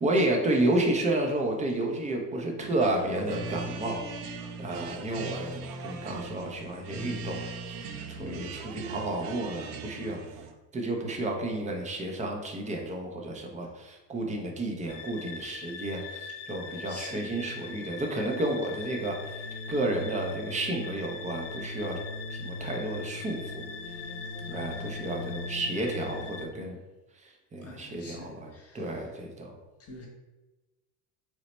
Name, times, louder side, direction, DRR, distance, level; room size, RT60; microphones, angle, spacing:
voice 1, 0.0-4.0 4.6-7.8 8.1-10.2 10.7-19.4 19.7-22.0 22.3-23.6 24.5-26.8 27.2-28.5 28.7-29.5, right 1 dB, 15° right, 1 dB, 0.3 m, -31 dB
sound 1, 2.6-10.5, right 4 dB, 75° right, 0.5 m, -40 dB
voice 2, 5.8-6.3 8.2-8.6 16.0-16.1 16.5-17.8 24.2-25.5 27.6-29.1 29.8-30.1, left 2 dB, 30° left, 0 dB, 0.9 m, -49 dB
sound 2, 14.9-26.5, left 3 dB, 70° left, 0.6 m, -39 dB
3.1 x 2.0 x 3.9 m, 1.1 s
supercardioid pair, 105°, 49 cm